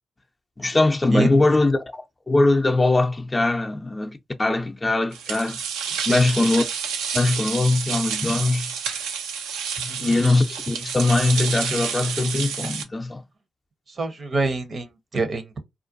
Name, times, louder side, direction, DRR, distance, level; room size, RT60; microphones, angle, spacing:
voice 1, 0.6-5.6 6.1-6.6 7.1-8.7 9.8-13.2, left 2 dB, 25° left, 0.5 m, -21 dB
sound 1, 5.1-12.8, right 7 dB, 80° right, 0.4 m, -29 dB
voice 2, 13.9-15.6, right 3 dB, 50° right, 0.7 m, -26 dB
2.4 x 2.2 x 2.6 m
hypercardioid pair, 45°, 0 cm